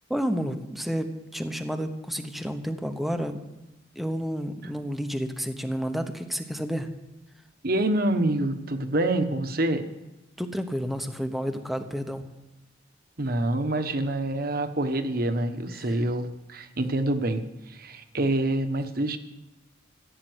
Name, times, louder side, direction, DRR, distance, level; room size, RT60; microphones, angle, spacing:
voice 1, 0.1-3.4 3.9-6.9 10.4-12.3 15.7-16.0, equal, ahead, 7 dB, 1.0 m, -30 dB
voice 2, 7.6-9.8 13.2-19.2, right 1 dB, 50° right, 7 dB, 1.2 m, -26 dB
15.5 x 8.9 x 8.0 m, 0.99 s
head